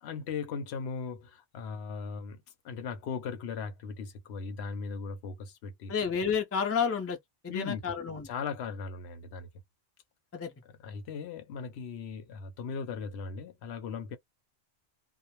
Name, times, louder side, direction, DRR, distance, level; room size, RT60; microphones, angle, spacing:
voice 1, 0.0-5.9 7.5-7.8 8.2-9.5 10.8-14.2, left 5 dB, 75° left, 0.9 m, -38 dB
voice 2, 5.9-7.2 7.4-8.3 10.3-10.5, left 6 dB, 20° left, 0.4 m, -30 dB
2.1 x 2.1 x 2.9 m
omnidirectional pair, 1.1 m